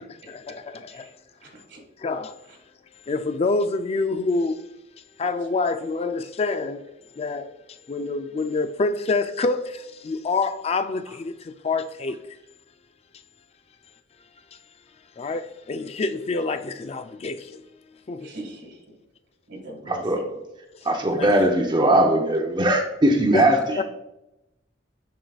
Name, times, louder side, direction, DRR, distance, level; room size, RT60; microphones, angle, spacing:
voice 1, 0.3-1.1 2.0-2.4 3.1-4.6 5.2-6.8 7.2-7.5 7.9-11.3 11.6-12.2 15.2-17.4 18.1-18.3 21.1-21.3 23.3-23.5 23.8-23.9, left 3 dB, 35° left, 0.3 m, -26 dB
voice 2, 1.4-1.8 18.2-18.8 19.5-20.0, right 1 dB, 75° right, 1.9 m, -40 dB
voice 3, 19.9-20.2 20.8-23.8, right 1 dB, 25° right, 0.7 m, -20 dB
9.1 x 4.8 x 2.4 m
head